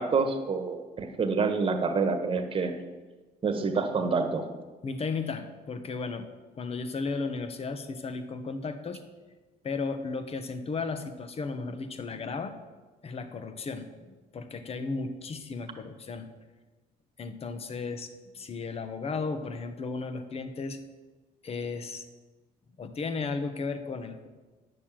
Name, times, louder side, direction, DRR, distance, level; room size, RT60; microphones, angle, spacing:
voice 1, 0.0-2.7 3.4-4.5, right 4 dB, 30° right, 5 dB, 1.4 m, -27 dB
voice 2, 4.8-6.3 6.5-9.0 9.6-12.5 13.0-16.3 17.2-20.8 21.4-22.1 22.8-24.3, left 4 dB, 35° left, 9 dB, 1.0 m, -35 dB
10.0 x 6.7 x 7.5 m, 1.3 s
cardioid pair, 110°, 17 cm